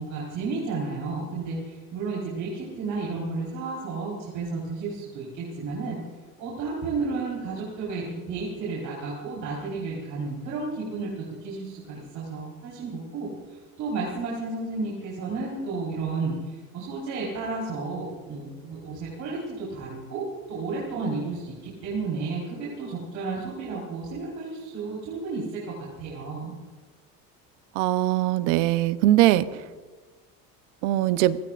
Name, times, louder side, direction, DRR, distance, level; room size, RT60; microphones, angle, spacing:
voice 1, 0.0-6.0 6.4-26.5, right 3 dB, 55° right, -5 dB, 4.5 m, -32 dB
voice 2, 27.8-29.5 30.8-31.4, right 15 dB, 85° right, 13 dB, 0.9 m, -21 dB
30.0 x 16.5 x 2.5 m, 1.4 s
cardioid pair, 140°, 36 cm